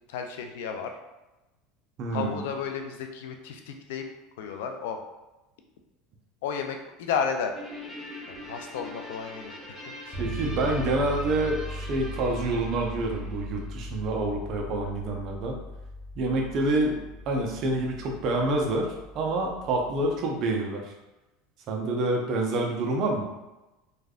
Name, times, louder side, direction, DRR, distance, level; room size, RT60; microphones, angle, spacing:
voice 1, 0.1-1.0 2.1-4.1 4.4-5.0 6.4-7.6 8.3-10.2 19.8-19.9, left 6 dB, 75° left, 5 dB, 0.4 m, -33 dB
voice 2, 2.0-2.4 10.2-15.6 16.2-17.0 17.3-18.9 19.1-20.8 21.7-23.3, right 2 dB, 55° right, 0 dB, 0.7 m, -27 dB
Guitar, 7.6-14.2, left 1 dB, 5° left, 1.4 m, -43 dB
sound 1, 10.1-20.3, equal, 30° left, 1.1 m, -39 dB
3.2 x 2.4 x 2.3 m, 1.0 s
hypercardioid pair, 85°, 0 cm